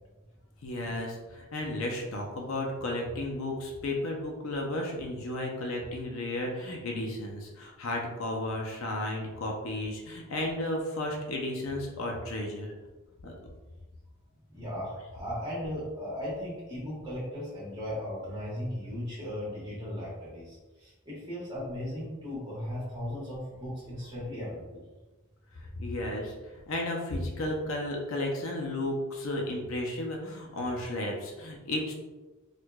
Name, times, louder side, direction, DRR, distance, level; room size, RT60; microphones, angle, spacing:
voice 1, 0.6-12.7 13.2-13.3 25.5-31.9, left 1 dB, 60° left, 0 dB, 0.5 m, -33 dB
voice 2, 14.5-24.8, equal, 20° right, -8 dB, 1.3 m, -37 dB
4.5 x 2.4 x 2.3 m, 1.2 s
head